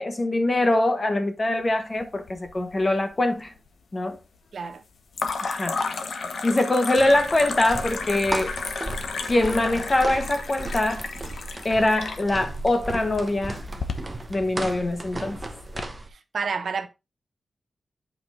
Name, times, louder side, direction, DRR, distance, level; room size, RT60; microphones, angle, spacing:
voice 1, 0.0-3.5 3.9-4.2 5.4-5.8 6.4-8.5 9.3-11.0 11.6-13.6 14.3-15.4, left 1 dB, 25° left, 1.1 m, -23 dB
sound 1, 2.0-2.8 3.0-3.7 5.1-15.8, left 4 dB, 65° left, 1.0 m, -33 dB
voice 2, 4.5-4.8 16.1-16.9, right 5 dB, 60° right, 0.8 m, -30 dB
sound 2, 7.0-16.1, right 2 dB, 15° right, 1.0 m, -35 dB
8.3 x 4.7 x 3.6 m
wide cardioid pair, 160°, 0 cm